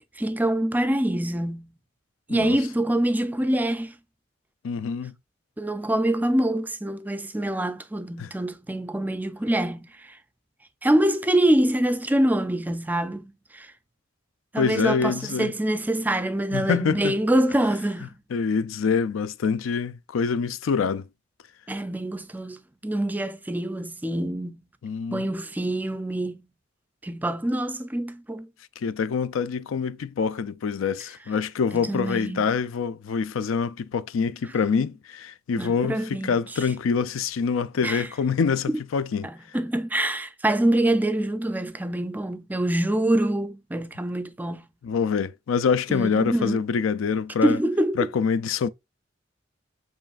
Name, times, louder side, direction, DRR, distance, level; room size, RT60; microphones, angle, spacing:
voice 1, 0.2-1.7 2.3-3.9 5.6-10.2 10.8-13.7 14.5-18.1 21.7-24.6 25.1-26.5 27.0-28.5 31.7-32.5 35.6-36.7 37.8-38.1 38.7-38.8 39.2-44.7 45.9-46.6 47.4-48.1, right 1 dB, 10° right, 0.4 m, -25 dB
voice 2, 4.6-5.1 8.2-8.3 14.6-15.5 16.5-17.2 18.3-21.0 24.8-25.3 28.8-39.3 44.8-47.6 48.0-48.7, left 6 dB, 90° left, 0.4 m, -25 dB
7.0 x 3.1 x 2.4 m
head